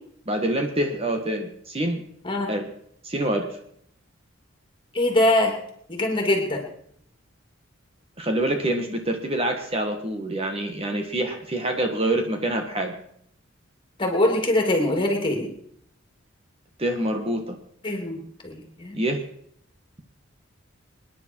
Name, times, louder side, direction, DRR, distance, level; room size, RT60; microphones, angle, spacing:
voice 1, 0.3-2.0 2.5-2.7 3.0-3.5 8.2-12.9 16.8-17.6 18.9-19.2, right 1 dB, 30° right, 4 dB, 1.6 m, -26 dB
voice 2, 4.9-5.6 5.9-6.6 14.0-15.5 17.8-19.0, left 1 dB, 25° left, 2 dB, 3.1 m, -23 dB
27.0 x 10.0 x 4.7 m, 0.68 s
head